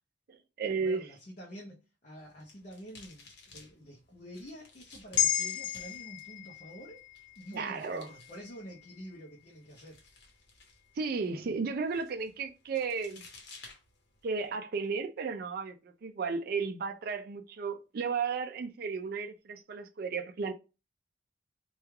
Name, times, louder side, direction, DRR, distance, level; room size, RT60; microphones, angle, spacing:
voice 1, 0.3-1.1 7.5-8.1 11.0-13.2 14.2-20.5, right 5 dB, 50° right, 0.4 m, -34 dB
voice 2, 0.8-7.0 7.4-10.0, equal, 40° left, 0.6 m, -48 dB
sound 1, 2.1-14.5, left 3 dB, 60° left, 0.9 m, -57 dB
sound 2, 5.2-9.7 10.1-10.2, left 12 dB, 85° left, 0.4 m, -35 dB
3.1 x 2.3 x 3.3 m
head